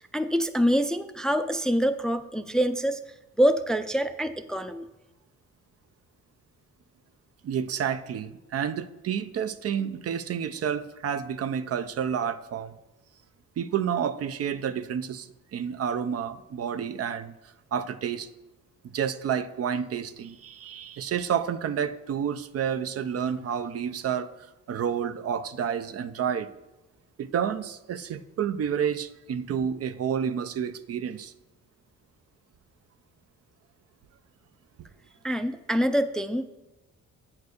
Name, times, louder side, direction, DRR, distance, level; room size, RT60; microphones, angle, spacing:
voice 1, 0.0-3.0 3.4-4.9 35.2-36.4, equal, ahead, 10 dB, 0.4 m, -25 dB
voice 2, 7.4-12.7 13.6-18.3 18.9-26.5 27.2-31.3, right 8 dB, 55° right, 12 dB, 0.5 m, -30 dB
8.4 x 4.6 x 6.4 m, 1.0 s
cardioid pair, 95°, 29 cm